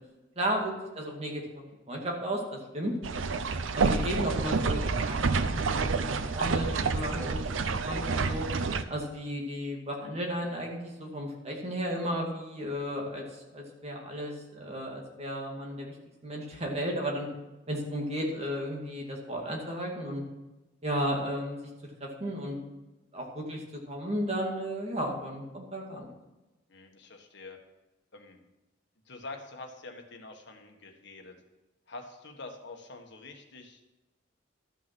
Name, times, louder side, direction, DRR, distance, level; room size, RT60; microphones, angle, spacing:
voice 1, 0.4-2.9 3.7-6.1 6.3-7.5 7.8-8.5 8.9-15.9 16.2-17.3 17.7-20.2 20.8-21.7 22.0-22.6 23.1-26.1, equal, 35° right, 0 dB, 2.3 m, -34 dB
sound 1, 3.0-8.8, right 4 dB, 85° right, 0.6 m, -28 dB
voice 2, 26.7-27.6 28.1-28.4 29.1-31.4 31.9-33.8, left 3 dB, 65° left, 3 dB, 1.5 m, -46 dB
12.5 x 6.1 x 6.1 m, 1.0 s
head